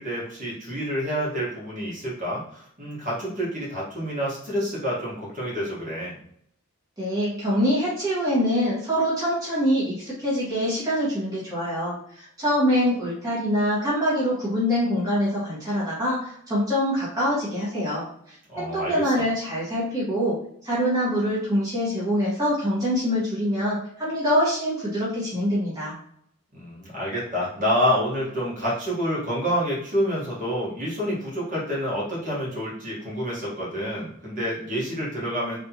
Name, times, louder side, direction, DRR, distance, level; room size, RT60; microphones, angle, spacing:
voice 1, 0.0-6.2 18.5-19.1 26.5-35.6, equal, 35° right, -6 dB, 1.4 m, -28 dB
voice 2, 7.0-25.9, equal, 15° right, -9 dB, 1.3 m, -25 dB
4.0 x 3.3 x 2.9 m, 0.67 s
head